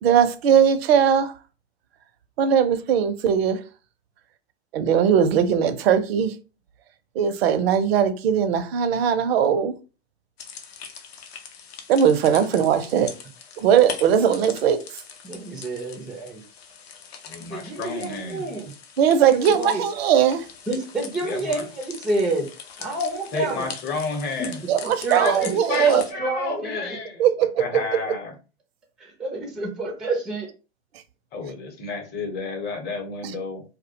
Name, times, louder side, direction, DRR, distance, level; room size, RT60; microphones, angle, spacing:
voice 1, 0.0-1.4 2.4-3.6 4.7-6.4 7.1-9.7 11.9-13.1 13.6-15.0 19.0-20.5 24.7-26.1 27.2-28.0 30.9-31.0 33.2-33.3, right 8 dB, 65° right, 0.5 m, -20 dB
sound 1, 10.4-26.1, left 7 dB, 65° left, 0.6 m, -41 dB
voice 2, 15.2-16.4 17.5-18.7 19.4-19.8 20.7-22.5 22.8-23.7 24.4-24.5 24.8-27.0 29.0-30.5, right 2 dB, ahead, 0.3 m, -28 dB
voice 3, 17.3-18.5 21.2-21.6 23.3-24.6 25.1-27.2 27.6-28.3 31.3-33.6, left 4 dB, 30° left, 0.8 m, -31 dB
2.3 x 2.1 x 2.7 m
hypercardioid pair, 105°, 33 cm